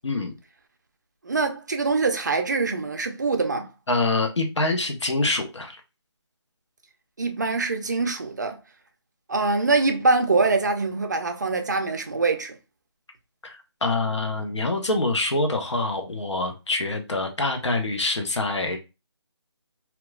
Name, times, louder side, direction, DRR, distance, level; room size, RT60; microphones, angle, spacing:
voice 1, 1.2-3.7 7.2-8.6 9.3-12.6, right 3 dB, 40° right, 0.4 m, -24 dB
voice 2, 3.9-5.8 13.4-18.8, left 2 dB, 85° left, 0.8 m, -25 dB
2.9 x 2.2 x 2.2 m
figure-of-eight pair, 165°, 15 cm